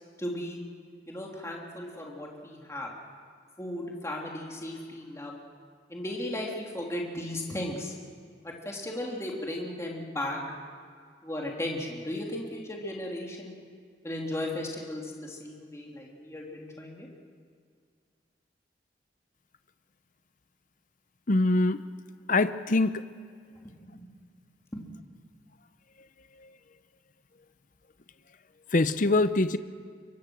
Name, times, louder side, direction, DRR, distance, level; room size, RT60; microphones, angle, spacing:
voice 1, 0.2-0.6 1.1-2.9 3.6-5.4 5.9-7.9 8.4-10.4 11.2-13.5 14.0-17.1 23.6-24.1 24.7-24.8, left 1 dB, 15° left, -1 dB, 3.0 m, -36 dB
voice 2, 21.3-21.8 22.3-23.0 28.7-29.6, left 2 dB, 45° left, 12 dB, 0.7 m, -23 dB
24.5 x 23.0 x 6.3 m, 2.1 s
head